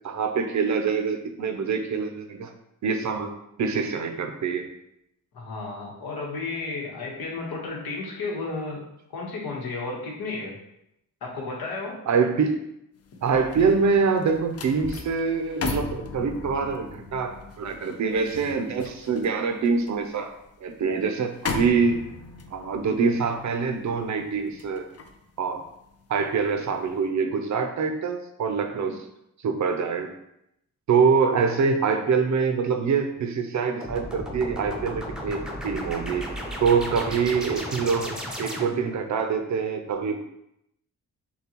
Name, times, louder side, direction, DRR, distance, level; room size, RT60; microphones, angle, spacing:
voice 1, 0.0-2.5 2.8-4.7 12.1-12.6 13.2-20.3 20.6-22.0 22.5-24.9 25.4-25.6 26.1-29.0 29.4-30.1 30.9-36.3 36.6-40.2, right 5 dB, 55° right, 6 dB, 0.5 m, -25 dB
voice 2, 5.3-8.8 9.1-10.5 11.2-12.0, left 3 dB, 85° left, -2 dB, 1.3 m, -33 dB
sound 1, 13.0-26.3 26.7-27.0, left 4 dB, 45° left, 0.5 m, -37 dB
sound 2, 33.8-39.0, equal, ahead, 0.6 m, -34 dB
6.7 x 2.3 x 2.9 m, 0.81 s
wide cardioid pair, 140°, 35 cm